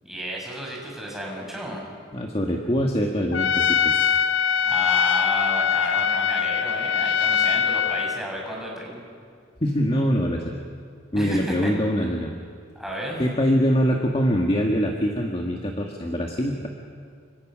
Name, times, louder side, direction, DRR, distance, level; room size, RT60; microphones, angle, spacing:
voice 1, 0.0-1.8 4.7-9.0 11.1-11.7 12.7-13.2, equal, ahead, -3 dB, 6.3 m, -32 dB
voice 2, 2.1-4.1 9.6-10.5 11.1-12.3 13.2-16.7, equal, 30° left, 1 dB, 1.7 m, -23 dB
Trumpet, 3.3-8.2, left 7 dB, 70° left, 0.8 m, -22 dB
29.5 x 25.5 x 6.3 m, 2.1 s
head